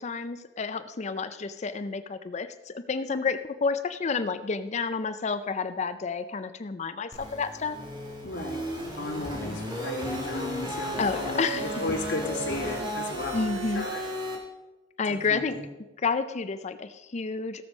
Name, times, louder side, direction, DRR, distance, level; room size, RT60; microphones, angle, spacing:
voice 1, 0.0-7.8 11.0-11.8 13.3-13.9 15.0-15.6 16.0-17.7, left 4 dB, 40° left, 11 dB, 0.5 m, -30 dB
sound 1, 7.1-14.4, equal, 25° right, 2.5 m, -34 dB
voice 2, 8.2-8.7 8.9-14.0 15.1-15.6, left 2 dB, 75° left, -1 dB, 2.7 m, -34 dB
16.0 x 7.1 x 5.2 m, 1.1 s
head